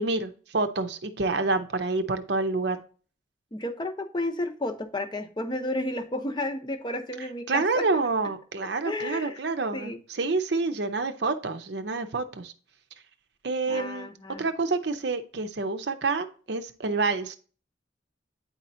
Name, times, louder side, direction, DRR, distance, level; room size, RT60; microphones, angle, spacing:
voice 1, 0.0-2.8 7.5-12.5 13.4-14.1 14.4-17.4, right 3 dB, 60° right, 8 dB, 0.7 m, -28 dB
voice 2, 3.5-7.9 8.8-9.4 9.7-10.0 13.7-14.5, left 1 dB, 25° left, 7 dB, 0.7 m, -32 dB
9.3 x 4.3 x 2.6 m, 0.39 s
head